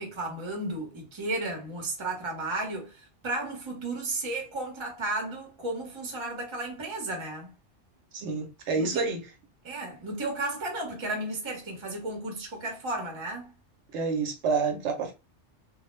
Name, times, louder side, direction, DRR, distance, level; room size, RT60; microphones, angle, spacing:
voice 1, 0.0-7.5 8.8-9.0 9.6-13.5, right 2 dB, 30° right, 0.7 m, -34 dB
voice 2, 8.1-9.2 13.9-15.1, right 4 dB, 75° right, 0.9 m, -28 dB
2.2 x 2.0 x 3.0 m
omnidirectional pair, 1.2 m